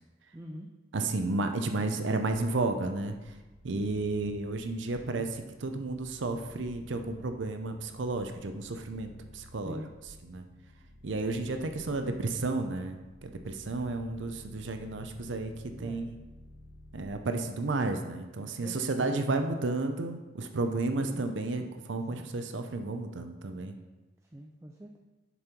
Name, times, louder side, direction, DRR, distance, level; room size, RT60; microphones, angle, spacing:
voice 1, 0.3-0.7 9.6-9.9 15.8-16.1 18.4-19.4 21.0-21.2 22.1-22.3 24.3-25.0, equal, 15° right, 1 dB, 0.4 m, -45 dB
voice 2, 0.9-3.1 3.6-9.8 10.2-10.4 11.0-13.0 13.2-15.5 15.8-16.2 16.9-21.6 21.9-23.7, right 2 dB, 80° right, 6 dB, 0.6 m, -32 dB
sound 1, 2.2-17.1, left 1 dB, 70° left, 1.5 m, -54 dB
7.0 x 4.6 x 5.2 m, 1.1 s
head